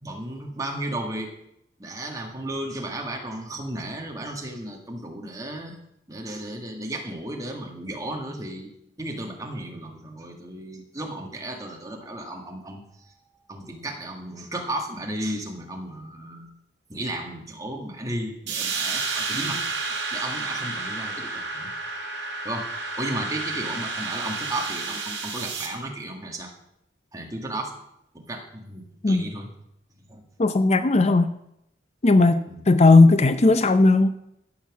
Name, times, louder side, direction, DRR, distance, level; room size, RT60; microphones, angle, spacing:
voice 1, 0.0-1.4 1.8-5.8 6.1-8.7 9.0-13.1 13.5-16.5 16.9-19.6 20.1-21.7 22.4-22.7 23.0-26.5 27.1-27.7 28.1-29.5 30.1-30.3 32.5-32.6, right 1 dB, 20° right, 1 dB, 1.8 m, -34 dB
sound 1, 18.5-25.7, right 4 dB, 65° right, 2.7 m, -30 dB
voice 2, 30.4-31.3 32.0-34.1, left 3 dB, 35° left, 11 dB, 0.5 m, -17 dB
14.5 x 5.9 x 7.3 m, 0.80 s
head